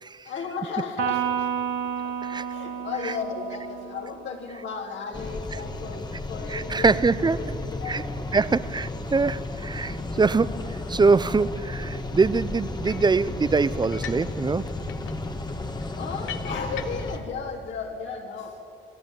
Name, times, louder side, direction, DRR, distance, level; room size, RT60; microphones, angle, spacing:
voice 1, 0.2-1.5 1.8-8.1 15.9-18.6, left 5 dB, 70° left, 3.5 m, -35 dB
Electric guitar, 1.0-4.5, right 8 dB, 70° right, 2.6 m, -30 dB
sound 1, 5.1-17.2, left 2 dB, 20° left, 1.6 m, -33 dB
voice 2, 6.5-7.5 7.9-8.0 8.3-14.7, right 4 dB, 20° right, 0.5 m, -23 dB
sound 2, 12.8-13.2 13.8-14.3 14.6-17.2, left 10 dB, 90° left, 1.1 m, -41 dB
26.0 x 13.0 x 8.5 m
cardioid pair, 90°, 20 cm